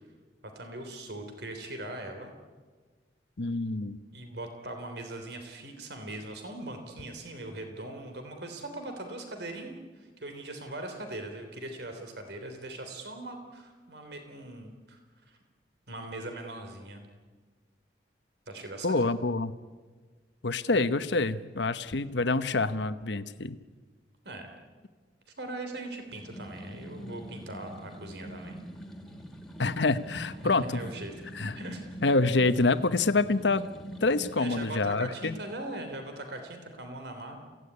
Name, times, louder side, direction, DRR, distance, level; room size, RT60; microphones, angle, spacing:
voice 1, 0.4-2.3 4.1-15.0 15.3-15.4 15.9-17.0 18.5-19.0 24.2-24.5 25.4-28.6 30.4-31.1 31.5-31.9 34.4-37.4, right 1 dB, 65° right, 5 dB, 3.4 m, -40 dB
voice 2, 3.4-4.0 18.8-19.5 20.4-23.6 29.6-30.8 31.3-31.6 32.0-33.7 34.0-35.4, left 3 dB, 75° left, 12 dB, 1.0 m, -26 dB
sound 1, 26.0-34.4, equal, 5° left, 2.5 m, -44 dB
28.0 x 17.0 x 9.7 m, 1.4 s
head